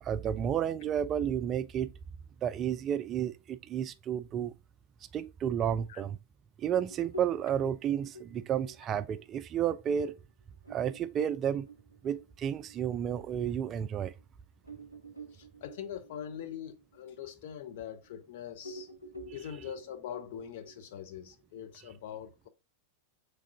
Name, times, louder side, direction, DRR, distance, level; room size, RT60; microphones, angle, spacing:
voice 1, 0.0-1.9 2.4-4.5 5.1-6.2 6.6-10.2 10.7-11.7 12.0-14.1, right 9 dB, 30° right, 0.3 m, -31 dB
sound 1, 6.7-13.7 14.2-14.3 14.6-18.2 18.6-21.7, right 1 dB, 85° left, 0.7 m, -50 dB
voice 2, 15.3-18.9 19.3-22.5, left 9 dB, 55° left, 0.6 m, -43 dB
3.6 x 3.4 x 3.6 m
figure-of-eight pair, 90°, 0 cm